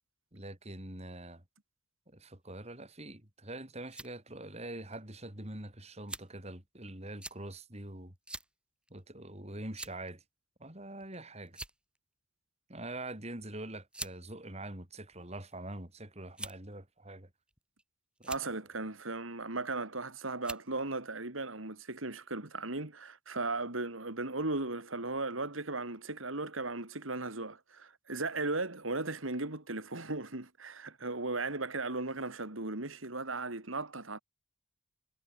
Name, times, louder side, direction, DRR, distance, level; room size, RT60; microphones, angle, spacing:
voice 1, 0.3-1.4 2.1-8.1 8.9-10.2 10.6-11.6 12.7-17.3 18.2-18.3, right 1 dB, 30° right, 4.4 m, -44 dB
sound 1, 3.8-4.1 4.9-5.0 6.1-6.4 7.2-7.4 8.3-8.5 8.9-9.0 9.7-10.1 11.0-11.2 11.5-12.0 13.1-13.2 13.9-14.2 15.0-15.6 16.3-16.7 17.5-17.8 18.2-18.5 19.7-20.0 20.4-20.7, right 2 dB, 5° right, 6.6 m, -44 dB
voice 2, 18.3-34.2, right 3 dB, 80° right, 3.3 m, -37 dB
head